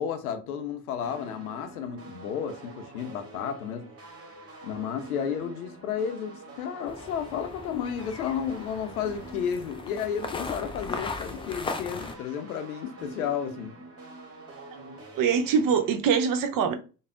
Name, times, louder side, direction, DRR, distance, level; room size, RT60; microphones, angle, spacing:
voice 1, 0.0-3.8 4.6-13.7, left 8 dB, 85° left, 0.5 m, -32 dB
sound 1, 1.0-16.0, right 2 dB, 35° right, 1.1 m, -46 dB
sound 2, 6.9-12.1, left 3 dB, 15° left, 0.3 m, -38 dB
voice 2, 14.7-16.8, right 6 dB, 50° right, 0.7 m, -24 dB
3.3 x 2.1 x 2.4 m
figure-of-eight pair, 45°, 43 cm